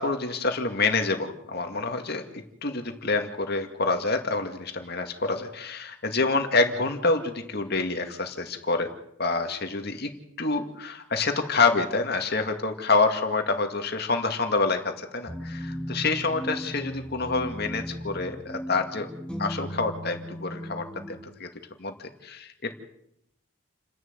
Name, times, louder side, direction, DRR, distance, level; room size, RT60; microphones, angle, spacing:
voice 1, 0.0-8.9 9.2-10.1 10.4-19.1 19.4-21.5 21.8-21.9 22.2-22.7, left 3 dB, 50° left, 5 dB, 2.2 m, -27 dB
sound 1, 15.3-21.2, equal, 5° left, 1.8 m, -36 dB
29.5 x 11.0 x 8.2 m, 0.77 s
head